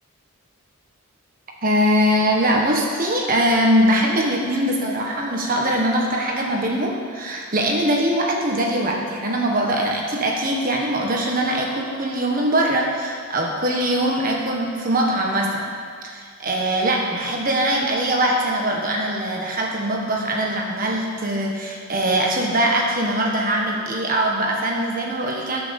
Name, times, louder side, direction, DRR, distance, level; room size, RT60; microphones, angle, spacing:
voice 1, 1.6-15.7 16.0-25.6, right 1 dB, 40° right, -1 dB, 1.4 m, -22 dB
13.5 x 6.2 x 7.2 m, 2.1 s
head